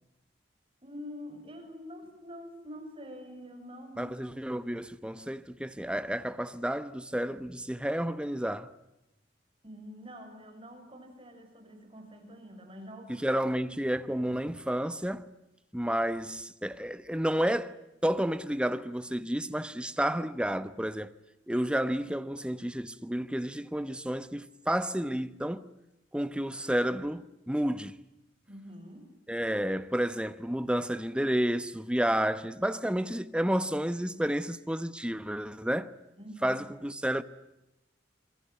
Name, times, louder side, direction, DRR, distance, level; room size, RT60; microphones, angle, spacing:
voice 1, 0.8-4.2 9.6-13.5 28.5-29.1 36.2-36.8, equal, 30° right, 6.5 m, -46 dB
voice 2, 4.0-8.7 13.1-15.3 15.7-17.8 18.0-21.1 21.5-25.7 26.1-28.0 29.3-35.9 36.4-37.2, equal, 5° right, 1.0 m, -31 dB
27.0 x 22.5 x 9.3 m
head